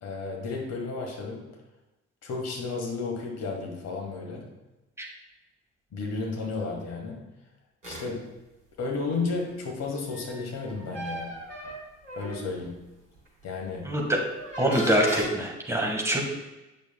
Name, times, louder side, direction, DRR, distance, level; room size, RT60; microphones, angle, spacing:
voice 1, 0.0-1.5 2.2-4.5 5.9-7.2 7.8-8.3 8.8-11.3 12.1-12.7 13.4-13.9, left 4 dB, 45° left, 0 dB, 1.7 m, -33 dB
sound 1, 7.8-8.0 10.1-12.7 13.3-13.4 14.3-15.2, equal, 85° right, 1.4 m, -36 dB
voice 2, 13.8-14.2 14.6-16.2, right 1 dB, 10° right, 0 dB, 1.6 m, -24 dB
8.2 x 6.6 x 2.3 m, 1.0 s
figure-of-eight pair, 45°, 36 cm